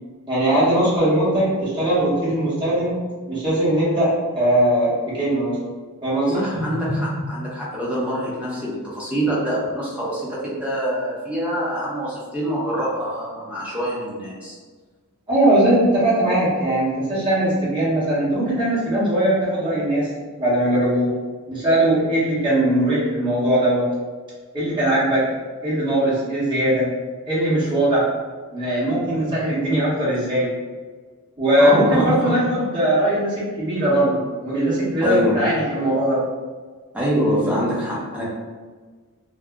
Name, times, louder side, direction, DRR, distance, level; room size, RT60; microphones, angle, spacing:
voice 1, 0.3-3.0 3.3-5.6 6.0-7.1 15.3-20.1 20.4-21.1 21.5-23.9 24.5-25.3 25.6-26.9 27.3-28.1 28.5-30.5 31.4-36.2, right 1 dB, 20° right, -10 dB, 1.0 m, -20 dB
voice 2, 6.3-14.6 31.6-32.3 35.0-35.5 36.9-38.3, equal, 5° right, -7 dB, 0.6 m, -25 dB
2.3 x 2.0 x 3.5 m, 1.4 s
head